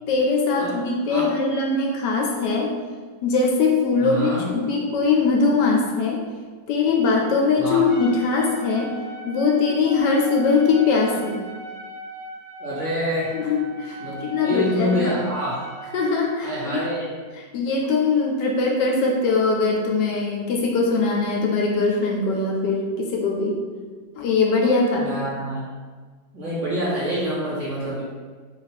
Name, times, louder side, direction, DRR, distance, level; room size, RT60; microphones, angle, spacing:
voice 1, 0.1-2.7 3.2-6.2 6.7-8.9 9.2-11.4 13.3-15.1 15.9-16.8 17.5-23.6 24.2-25.1, left 4 dB, 75° left, 0 dB, 1.1 m, -21 dB
voice 2, 0.6-1.3 4.0-4.5 7.5-7.9 12.6-13.4 14.0-15.7 16.4-17.1 24.9-25.6 26.3-28.0, equal, 50° right, -8 dB, 1.0 m, -27 dB
Trumpet, 7.9-16.3, right 1 dB, 25° left, 0.9 m, -39 dB
3.2 x 2.3 x 4.1 m, 1.5 s
omnidirectional pair, 2.0 m